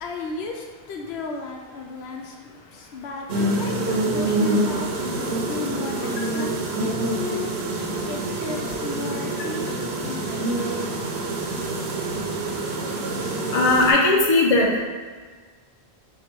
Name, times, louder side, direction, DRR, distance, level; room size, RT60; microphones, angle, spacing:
voice 1, 0.0-10.6, left 3 dB, 80° left, 1 dB, 0.8 m, -35 dB
sound 1, 3.3-13.9, right 2 dB, 75° right, 0.9 m, -26 dB
voice 2, 13.5-14.8, left 2 dB, 40° left, -2 dB, 0.7 m, -18 dB
4.6 x 2.3 x 4.5 m, 1.5 s
omnidirectional pair, 1.1 m